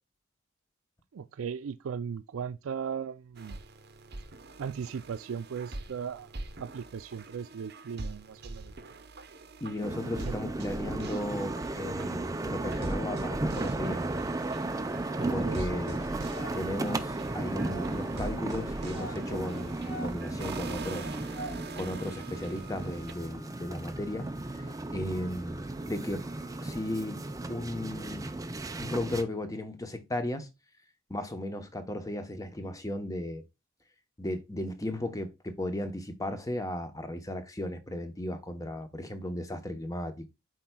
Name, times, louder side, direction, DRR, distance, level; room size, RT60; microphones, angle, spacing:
voice 1, 1.1-3.6 4.6-6.3 6.6-8.7 10.1-10.4 15.2-16.0, right 7 dB, 85° right, 0.4 m, -37 dB
sound 1, 3.4-23.1, right 2 dB, 50° right, 0.8 m, -44 dB
voice 2, 9.6-14.3 15.3-16.0 16.5-21.1 21.8-24.3 24.5-24.7 24.9-26.2 26.6-27.2 27.5-28.3 28.8-30.5 31.1-33.4 34.2-40.3, left 1 dB, 15° left, 0.9 m, -35 dB
sound 2, 9.8-29.2, right 2 dB, 15° right, 0.5 m, -35 dB
sound 3, 14.4-28.7, equal, 80° left, 2.7 m, -49 dB
12.5 x 4.5 x 2.3 m
head